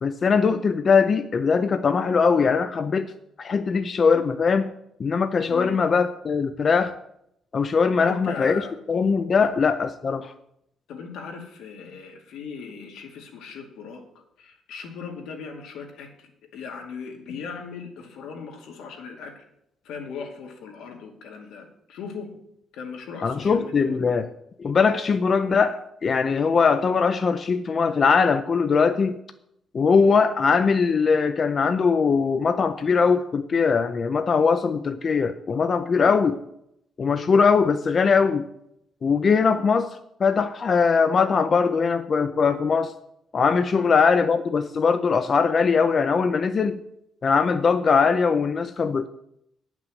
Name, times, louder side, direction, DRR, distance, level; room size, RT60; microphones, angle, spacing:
voice 1, 0.0-3.1 3.4-4.7 5.0-6.9 7.5-8.6 8.9-10.3 23.2-24.3 24.6-29.2 29.7-36.4 37.0-38.4 39.0-42.9 43.3-46.8 47.2-49.1, left 5 dB, 35° left, 9 dB, 0.5 m, -21 dB
voice 2, 5.5-5.9 8.0-8.7 9.4-9.5 10.9-14.0 14.4-19.4 19.8-22.3 22.7-24.0 35.9-36.2 43.7-43.9, left 5 dB, 80° left, 2 dB, 2.2 m, -38 dB
9.8 x 6.1 x 7.6 m, 0.76 s
cardioid pair, 155°, 0 cm